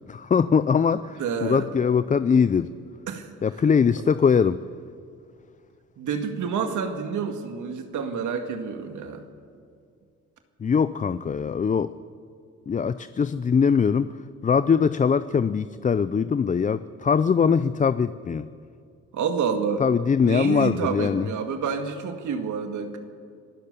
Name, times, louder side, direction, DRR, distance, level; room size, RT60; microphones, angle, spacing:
voice 1, 0.1-2.7 3.4-4.6 10.6-11.9 12.7-14.1 14.4-18.5 19.8-21.3, left 6 dB, 25° left, 14 dB, 0.5 m, -22 dB
voice 2, 1.2-1.6 3.1-3.3 6.0-9.2 19.1-19.8 20.2-23.0, right 6 dB, 75° right, 6 dB, 2.0 m, -28 dB
26.0 x 15.0 x 6.9 m, 2.3 s
cardioid pair, 90°, 30 cm